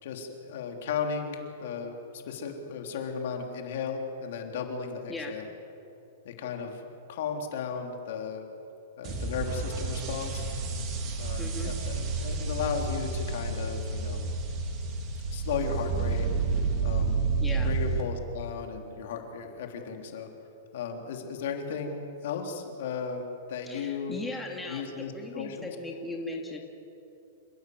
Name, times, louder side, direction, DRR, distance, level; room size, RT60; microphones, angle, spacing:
voice 1, 0.0-5.5 6.2-8.4 9.0-10.5 11.2-14.2 15.3-16.3 16.8-17.2 17.6-20.3 20.7-24.2 24.7-25.7, left 6 dB, 65° left, 3 dB, 3.4 m, -35 dB
sound 1, 9.0-18.0, right 4 dB, 30° right, 3.4 m, -30 dB
voice 2, 11.4-11.7 17.4-17.7 23.7-26.6, left 2 dB, 5° left, 0 dB, 2.5 m, -38 dB
28.0 x 17.0 x 8.0 m, 2.8 s
hypercardioid pair, 150°, 0 cm